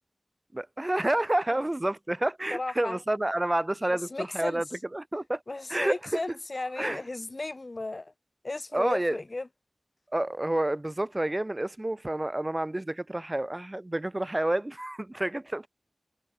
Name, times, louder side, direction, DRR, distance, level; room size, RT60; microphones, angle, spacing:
voice 1, 0.5-4.6 4.9-5.4 5.7-6.2 6.8-7.0 8.7-9.2 10.1-15.7, right 1 dB, 30° right, 0.4 m, -29 dB
voice 2, 2.5-3.0 4.1-4.6 5.5-8.1 8.4-9.5, left 2 dB, 60° left, 0.7 m, -34 dB
wide cardioid pair, 60°, 0 cm